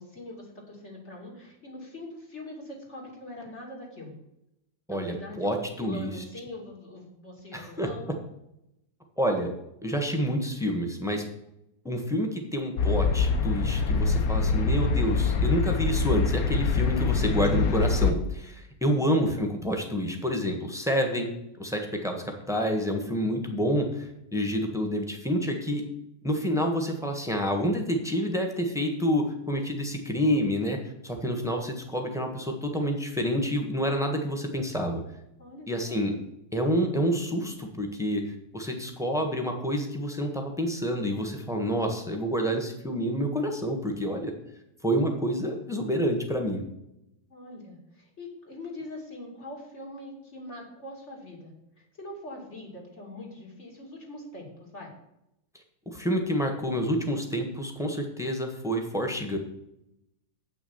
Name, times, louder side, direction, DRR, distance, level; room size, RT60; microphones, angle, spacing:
voice 1, 0.0-4.1 4.9-8.1 18.9-19.2 35.4-36.0 47.3-54.9, left 1 dB, 35° left, -1 dB, 2.8 m, -43 dB
voice 2, 4.9-6.1 7.5-7.9 9.2-9.5 9.8-11.2 11.8-21.3 21.6-25.8 26.2-30.8 31.0-35.0 35.7-36.1 36.5-38.2 38.5-44.3 44.8-46.6 55.9-59.4, equal, ahead, 3 dB, 1.1 m, -28 dB
sound 1, 12.8-18.1, left 4 dB, 60° left, 1.1 m, -24 dB
8.4 x 6.0 x 7.1 m, 0.84 s
omnidirectional pair, 2.1 m